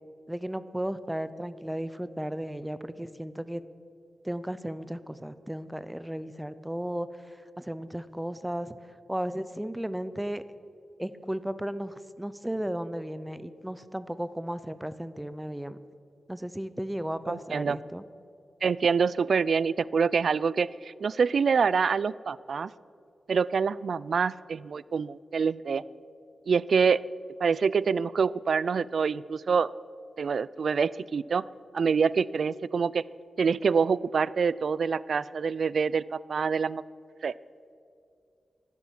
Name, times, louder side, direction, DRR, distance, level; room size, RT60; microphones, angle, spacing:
voice 1, 0.3-3.6 4.2-8.8 9.1-10.4 11.0-15.8 16.3-18.0, right 1 dB, 5° right, 14 dB, 0.6 m, -35 dB
voice 2, 17.3-17.8 18.6-22.7 23.3-25.8 26.5-27.0 27.4-29.7 30.2-31.4 31.7-33.0 33.4-36.8 37.2-37.3, right 5 dB, 55° right, 20 dB, 0.3 m, -26 dB
12.5 x 10.5 x 9.9 m, 2.5 s
wide cardioid pair, 160°, 0 cm